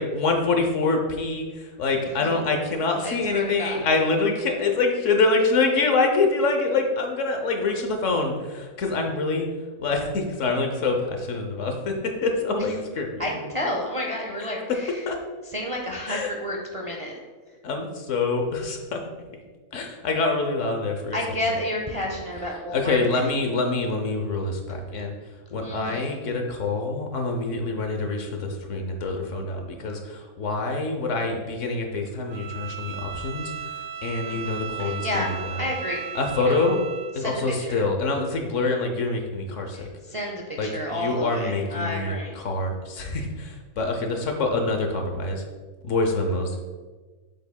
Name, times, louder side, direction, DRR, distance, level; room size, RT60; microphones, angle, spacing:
voice 1, 0.0-9.4 9.8-11.9 12.2-13.4 15.1-15.2 16.1-16.3 17.6-19.0 19.7-21.2 22.7-25.1 25.5-33.5 34.0-35.2 36.1-36.8 37.1-39.9 40.6-45.4 45.8-46.6, left 3 dB, 60° left, 3 dB, 1.1 m, -25 dB
voice 2, 3.0-3.8 12.6-12.7 13.2-15.1 15.4-17.2 21.1-23.3 25.6-26.2 34.2-36.1 36.3-36.6 37.1-37.8 39.7-42.4, left 1 dB, 30° right, 0 dB, 0.6 m, -31 dB
Bowed string instrument, 32.3-37.2, right 8 dB, 65° right, 0.9 m, -36 dB
7.8 x 7.1 x 2.3 m, 1.4 s
omnidirectional pair, 1.5 m